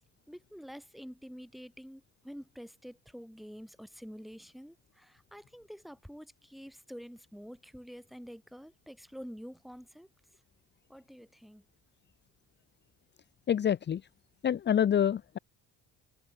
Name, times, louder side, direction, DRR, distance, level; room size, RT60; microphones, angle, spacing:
voice 1, 0.3-10.1 10.9-11.6, equal, ahead, 4.4 m, -48 dB
voice 2, 13.5-14.0 14.4-15.4, left 9 dB, 30° left, 1.3 m, -27 dB
cardioid pair, 175°, 34 cm